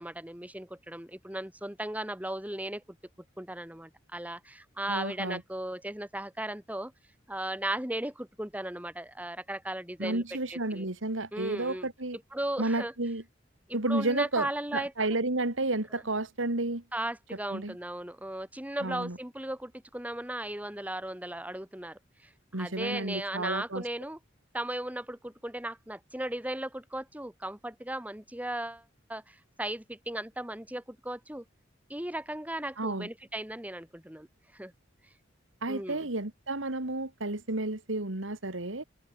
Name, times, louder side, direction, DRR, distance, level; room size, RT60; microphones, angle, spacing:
voice 1, 0.0-3.0 3.4-6.9 7.3-10.2 10.5-10.9 11.3-11.9 12.3-12.9 13.7-14.9 15.9-16.0 16.9-22.3 22.6-24.2 24.5-28.8 29.1-31.4 31.9-34.3 34.5-34.7 35.7-36.1, right 1 dB, 10° right, 2.1 m, -36 dB
voice 2, 4.9-5.4 10.0-12.2 12.6-13.2 13.7-16.8 17.5-17.7 18.8-19.2 22.5-23.8 32.8-33.1 35.6-38.8, right 2 dB, 90° right, 2.7 m, -31 dB
open air
head